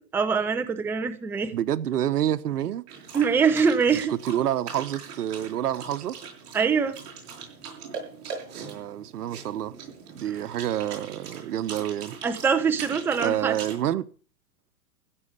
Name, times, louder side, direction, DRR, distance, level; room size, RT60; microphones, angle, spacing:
voice 1, 0.1-1.5 3.1-4.1 6.5-7.0 12.2-13.6, right 6 dB, 5° right, 0.6 m, -23 dB
voice 2, 1.5-2.8 4.1-6.2 8.5-9.7 10.1-12.1 13.2-14.1, right 11 dB, 75° right, 1.2 m, -28 dB
sound 1, 2.9-13.8, right 6 dB, 35° right, 7.2 m, -41 dB
16.0 x 7.9 x 8.2 m
hypercardioid pair, 140°, 46 cm